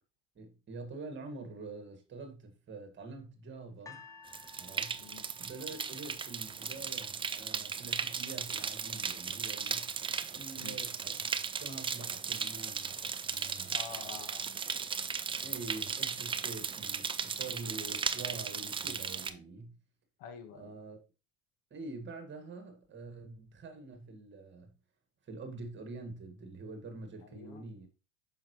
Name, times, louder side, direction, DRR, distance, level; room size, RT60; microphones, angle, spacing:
voice 1, 0.4-4.1 4.6-5.0 5.4-9.9 10.3-12.9 13.3-13.8 15.4-19.8 20.5-21.0 21.7-24.8 25.2-27.9, right 3 dB, 30° right, 2.0 m, -46 dB
sound 1, 3.9-7.0 7.8-7.9, left 5 dB, 10° left, 1.0 m, -55 dB
sound 2, 4.3-19.3, right 6 dB, 15° right, 0.4 m, -36 dB
voice 2, 5.0-5.3 10.6-10.8 13.7-14.4 20.2-20.7 27.2-27.6, left 7 dB, 60° left, 1.7 m, -47 dB
7.3 x 5.8 x 3.1 m
hypercardioid pair, 90°, 38 cm